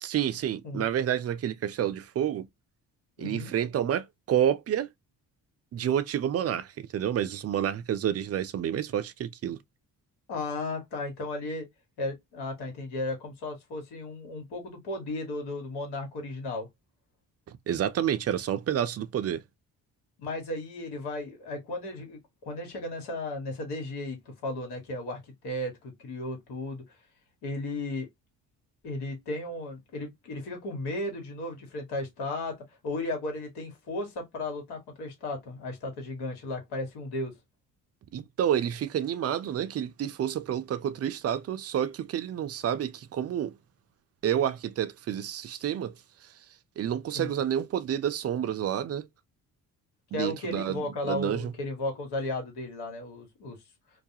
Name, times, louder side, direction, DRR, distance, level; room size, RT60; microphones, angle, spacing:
voice 1, 0.0-2.5 3.2-4.9 5.7-9.6 17.5-19.4 38.1-43.6 44.2-46.0 46.2-46.3 46.8-49.1 50.1-51.5, right 10 dB, 40° right, 0.4 m, -29 dB
voice 2, 3.2-3.5 10.3-11.7 12.0-16.7 20.2-26.8 27.4-28.1 28.8-32.6 32.8-37.3 47.1-47.4 50.1-53.6, left 2 dB, 80° left, 1.3 m, -35 dB
2.3 x 2.1 x 2.7 m
supercardioid pair, 60°, 39 cm